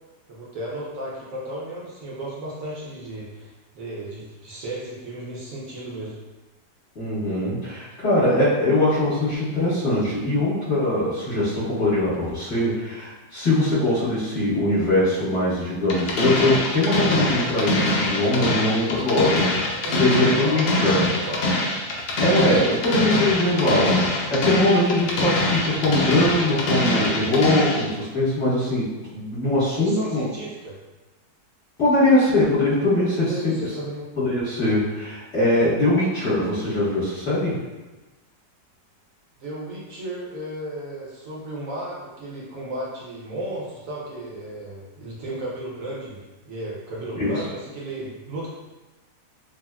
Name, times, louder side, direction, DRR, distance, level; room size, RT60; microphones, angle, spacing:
voice 1, 0.3-6.1 19.8-21.6 29.7-30.7 33.2-34.0 39.4-48.5, right 1 dB, 65° right, -5 dB, 0.9 m, -34 dB
voice 2, 6.9-21.0 22.2-30.2 31.8-33.6 34.2-37.6 47.2-47.4, left 1 dB, 50° left, -14 dB, 1.3 m, -22 dB
sound 1, 15.9-27.9, left 1 dB, 90° left, 1.3 m, -23 dB
3.5 x 2.0 x 2.2 m, 1.1 s
omnidirectional pair, 1.9 m